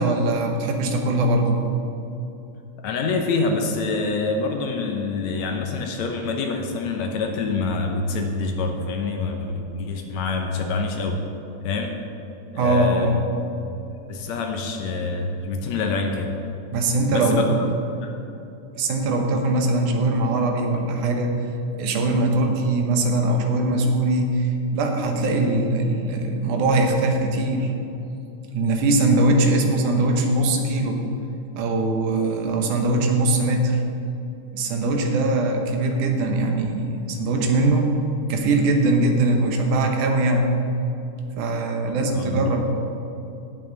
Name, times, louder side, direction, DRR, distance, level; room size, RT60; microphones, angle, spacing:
voice 1, 0.0-1.6 12.5-13.2 16.7-17.4 18.8-21.4 21.7-27.7 28.5-31.0 31.6-33.8 34.5-37.9 38.3-40.5 41.4-42.7, right 2 dB, 85° right, 3 dB, 2.5 m, -21 dB
voice 2, 2.8-11.2 11.6-11.9 12.5-13.2 14.1-16.3 17.1-17.7 18.0-18.1 42.1-42.5, left 3 dB, 75° left, 3 dB, 2.0 m, -26 dB
17.0 x 5.9 x 3.9 m, 2.8 s
omnidirectional pair, 3.5 m